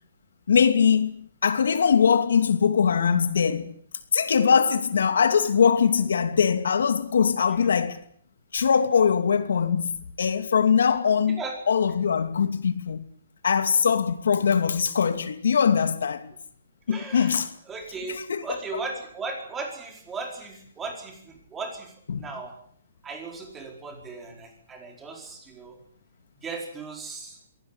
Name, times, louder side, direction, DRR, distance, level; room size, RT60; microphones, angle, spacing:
voice 1, 0.5-3.7 4.1-8.0 8.5-13.0 13.4-16.3 16.9-17.5 18.1-18.6 22.1-22.3, left 6 dB, 80° left, 2.6 m, -22 dB
voice 2, 16.9-17.4 17.7-22.5 23.0-25.8 26.4-27.4, right 3 dB, 10° right, 4.8 m, -37 dB
23.5 x 18.0 x 10.0 m
hypercardioid pair, 175°, 0 cm